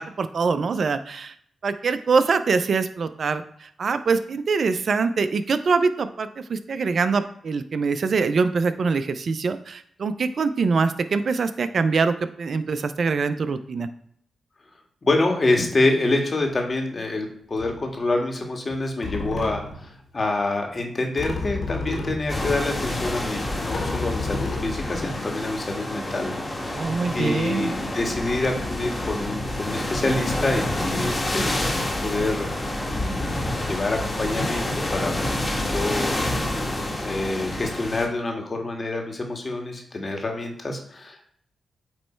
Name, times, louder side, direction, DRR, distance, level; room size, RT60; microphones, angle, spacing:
voice 1, 0.0-1.3 1.6-13.9 26.7-27.7, right 4 dB, 60° right, 11 dB, 0.5 m, -24 dB
voice 2, 15.0-32.5 32.9-35.1 35.5-36.1 37.0-41.3, left 2 dB, 40° left, 2 dB, 1.8 m, -27 dB
sound 1, 16.4-16.6 17.6-18.0 18.7-18.8 19.0-19.9 21.2-22.6 23.2-23.3 23.7-25.6, left 3 dB, 60° left, 1.7 m, -31 dB
sound 2, 22.3-38.1, left 1 dB, 25° left, 1.7 m, -28 dB
8.8 x 3.2 x 4.5 m, 0.65 s
cardioid pair, 55°, 0 cm